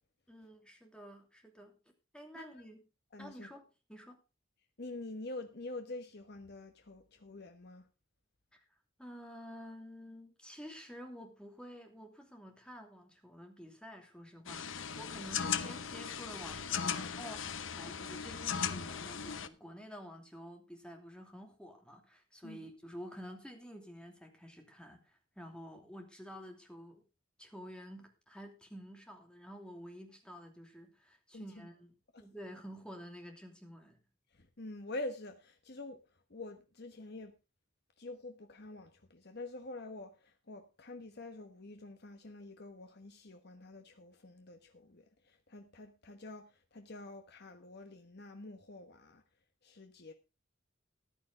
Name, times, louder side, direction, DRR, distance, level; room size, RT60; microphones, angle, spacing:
voice 1, 0.3-1.8 2.1-2.8 3.2-4.2 8.5-8.6 9.0-27.0 27.4-34.0, equal, 5° left, 2.8 m, -50 dB
voice 2, 2.3-2.7 3.1-3.5 4.8-7.9 22.4-22.7 31.3-31.7 32.1-32.3 34.3-37.3 38.0-49.2 49.6-50.1, left 2 dB, 55° left, 1.2 m, -47 dB
sound 1, 14.5-19.5, left 7 dB, 70° left, 0.9 m, -38 dB
14.5 x 11.5 x 3.8 m
head